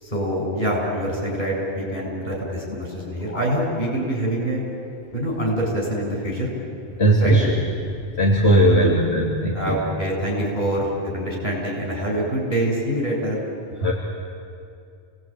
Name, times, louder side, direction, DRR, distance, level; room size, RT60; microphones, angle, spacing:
voice 1, 0.0-4.6 5.1-6.5 7.2-7.4 8.7-8.8 9.5-13.4, right 1 dB, 35° left, -2 dB, 7.8 m, -25 dB
voice 2, 7.0-7.5 7.9-9.9 13.8-13.9, right 1 dB, 55° left, -3 dB, 3.2 m, -19 dB
29.5 x 19.0 x 9.4 m, 2.4 s
omnidirectional pair, 1.3 m